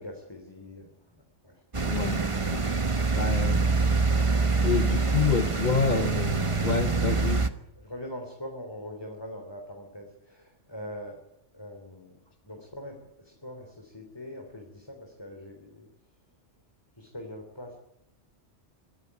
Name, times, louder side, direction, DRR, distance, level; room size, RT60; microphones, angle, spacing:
voice 1, 0.0-1.6 2.2-2.4 5.9-6.2 6.5-7.2 7.8-11.2 11.5-15.9 17.0-17.7, left 1 dB, 20° left, 2 dB, 3.4 m, -42 dB
sound 1, 1.7-7.5, right 4 dB, 30° right, 1.2 m, -25 dB
voice 2, 1.8-2.2 2.5-2.8 3.2-4.1 4.6-7.4, left 5 dB, 40° left, 8 dB, 1.1 m, -28 dB
25.5 x 14.5 x 9.7 m, 0.85 s
omnidirectional pair, 1.2 m